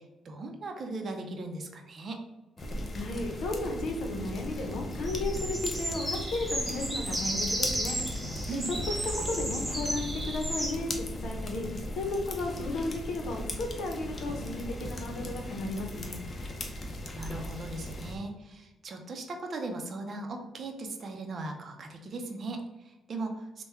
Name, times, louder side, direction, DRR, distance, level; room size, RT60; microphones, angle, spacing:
voice 1, 0.0-2.2 8.5-8.7 17.2-23.6, right 2 dB, 50° right, 3 dB, 0.5 m, -38 dB
sound 1, 2.6-18.2, left 1 dB, 35° left, 0.7 m, -37 dB
voice 2, 2.9-8.0 8.5-8.6 8.9-9.0 9.3-11.7 11.9-16.2, left 2 dB, 75° left, 3 dB, 0.7 m, -34 dB
sound 2, 4.4-10.7, right 1 dB, 5° right, 1.1 m, -34 dB
3.4 x 2.2 x 4.3 m, 1.0 s
cardioid pair, 90°, 0 cm